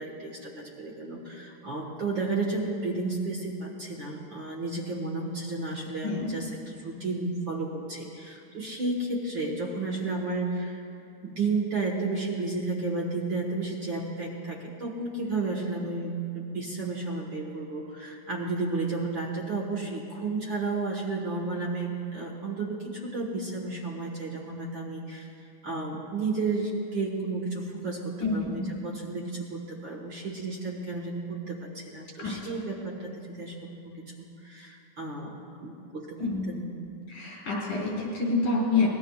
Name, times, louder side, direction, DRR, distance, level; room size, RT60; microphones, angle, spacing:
voice 1, 0.0-10.8 11.2-25.3 25.6-36.6, right 3 dB, 50° right, -2 dB, 1.6 m, -32 dB
voice 2, 6.0-6.4 28.2-28.7 32.2-32.6 36.2-36.5 37.1-38.9, left 3 dB, 90° left, -5 dB, 5.7 m, -28 dB
25.0 x 19.5 x 2.4 m, 2.5 s
omnidirectional pair, 3.7 m